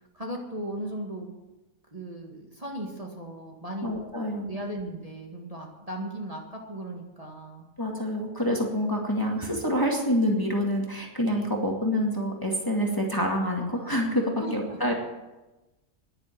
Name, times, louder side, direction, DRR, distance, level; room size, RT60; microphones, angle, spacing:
voice 1, 0.1-1.3 1.9-3.9 4.4-7.7 14.4-14.8, right 1 dB, 25° right, -1 dB, 2.0 m, -37 dB
voice 2, 3.8-4.5 7.8-14.9, equal, 15° left, 0 dB, 2.0 m, -27 dB
11.0 x 10.5 x 9.2 m, 1.1 s
omnidirectional pair, 1.6 m